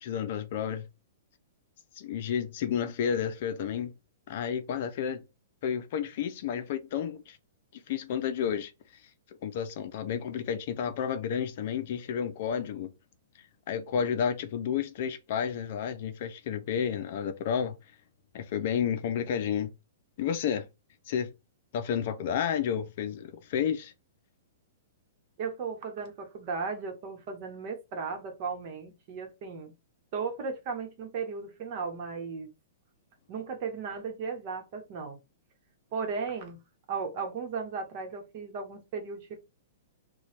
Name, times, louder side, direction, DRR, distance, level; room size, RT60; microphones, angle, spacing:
voice 1, 0.0-0.9 2.0-3.9 4.3-5.2 5.6-7.4 7.9-8.7 9.4-12.9 13.7-17.8 18.3-19.7 20.2-20.7 21.1-21.3 21.7-23.9, left 8 dB, 50° left, 0.5 m, -31 dB
voice 2, 25.4-29.7 30.1-32.5 33.3-35.2 35.9-36.6 36.9-39.4, right 5 dB, 40° right, 1.0 m, -36 dB
3.1 x 2.3 x 4.2 m
hypercardioid pair, 155°, 0 cm